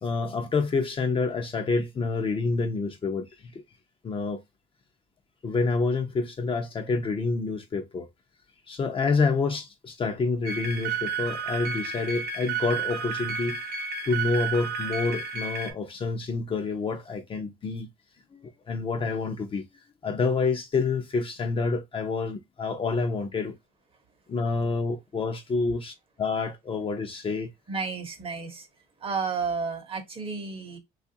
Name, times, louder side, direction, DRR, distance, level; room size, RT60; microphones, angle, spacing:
voice 1, 0.0-3.3 4.0-4.4 5.4-8.1 8.7-13.6 14.0-17.9 18.3-19.6 20.0-23.5 24.3-27.5, left 4 dB, 30° left, 0.6 m, -28 dB
sound 1, 10.5-15.7, right 5 dB, 70° right, 0.8 m, -31 dB
voice 2, 27.7-28.7 29.0-30.8, right 5 dB, 35° right, 0.8 m, -32 dB
3.2 x 2.4 x 2.7 m
cardioid pair, 110°, 17 cm